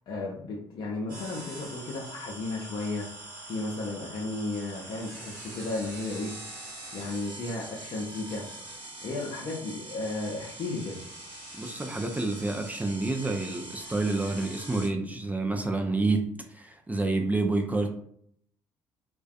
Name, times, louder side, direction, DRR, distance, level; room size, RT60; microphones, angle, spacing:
voice 1, 0.1-3.1 3.4-6.3 6.9-8.5 9.0-11.0, left 2 dB, 45° left, -3 dB, 0.6 m, -34 dB
sound 1, 1.1-14.9, right 2 dB, 85° right, 0.8 m, -43 dB
voice 2, 11.6-16.2 16.5-17.9, right 2 dB, 15° right, 3 dB, 0.4 m, -28 dB
2.4 x 2.2 x 2.3 m, 0.65 s
hypercardioid pair, 50°, 12 cm